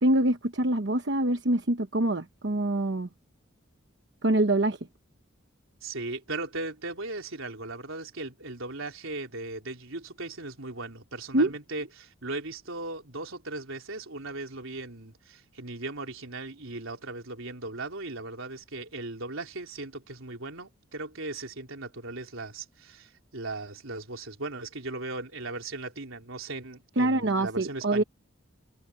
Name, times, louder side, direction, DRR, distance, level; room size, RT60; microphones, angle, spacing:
voice 1, 0.0-3.1 4.2-4.8 11.3-11.5 27.0-28.0, right 1 dB, 60° right, 1.1 m, -25 dB
voice 2, 5.8-28.0, right 2 dB, 80° right, 3.7 m, -38 dB
head